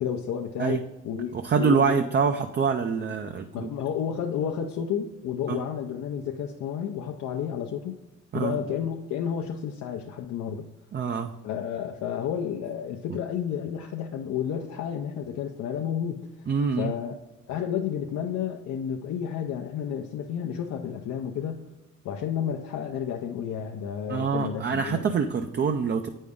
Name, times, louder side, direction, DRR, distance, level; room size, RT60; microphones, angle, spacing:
voice 1, 0.0-2.0 3.5-8.0 8.3-10.7 11.4-16.5 16.8-17.1 17.5-21.6 22.0-25.1, left 8 dB, 65° left, 2 dB, 0.7 m, -31 dB
voice 2, 1.4-3.7 5.5-5.6 8.3-8.6 10.9-11.3 16.5-16.9 24.1-26.1, right 5 dB, 35° right, 6 dB, 0.5 m, -25 dB
8.4 x 5.4 x 3.5 m, 0.99 s
cardioid pair, 90°, 30 cm